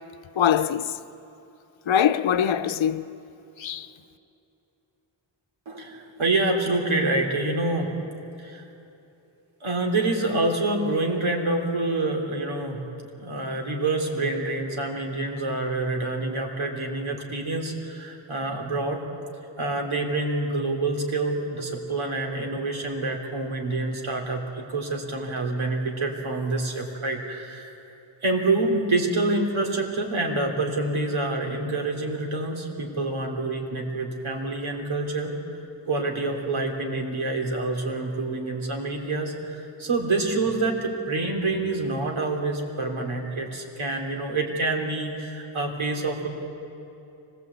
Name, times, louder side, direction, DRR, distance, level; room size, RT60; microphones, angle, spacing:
voice 1, 0.4-1.0 1.9-3.1 3.6-3.9, left 9 dB, 75° left, 0.8 m, -22 dB
voice 2, 5.7-7.9 8.4-8.6 9.6-12.8 13.2-19.0 19.6-27.7 28.2-35.4 35.9-46.3, right 2 dB, 85° right, 3.3 m, -27 dB
24.5 x 20.0 x 8.3 m
wide cardioid pair, 160°, 47 cm